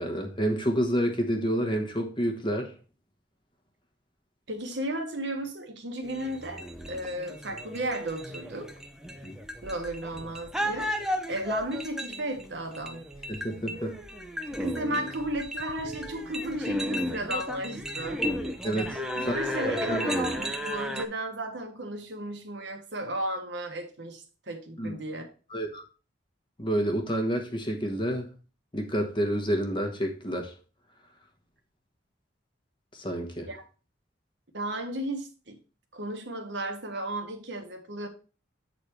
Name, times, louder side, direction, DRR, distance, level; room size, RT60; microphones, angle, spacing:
voice 1, 0.0-2.7 9.2-9.3 13.3-14.0 18.6-19.4 19.6-20.1 24.8-24.9 25.5-25.8 26.6-28.3 28.7-30.5 32.9-33.5, equal, 25° left, 1.2 m, -29 dB
voice 2, 4.5-8.7 9.6-10.9 11.3-13.0 14.5-18.2 19.2-25.3 33.5-33.6 34.5-35.6 35.9-38.1, right 1 dB, 70° right, 1.4 m, -34 dB
sound 1, 6.0-21.0, equal, 5° right, 0.7 m, -34 dB
8.2 x 4.1 x 4.6 m
head